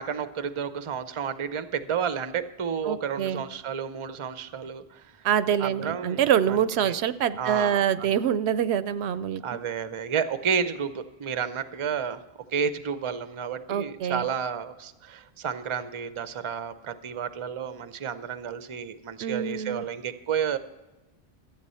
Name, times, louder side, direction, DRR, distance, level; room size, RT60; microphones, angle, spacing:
voice 1, 0.0-5.1 5.6-7.0 7.4-8.2 9.4-12.2 12.5-20.6, right 7 dB, 35° right, 12 dB, 0.6 m, -31 dB
voice 2, 2.9-3.4 5.2-9.4 13.7-14.2 19.2-19.8, right 9 dB, 85° right, 15 dB, 0.8 m, -25 dB
14.0 x 8.7 x 5.6 m, 1.1 s
omnidirectional pair, 1.1 m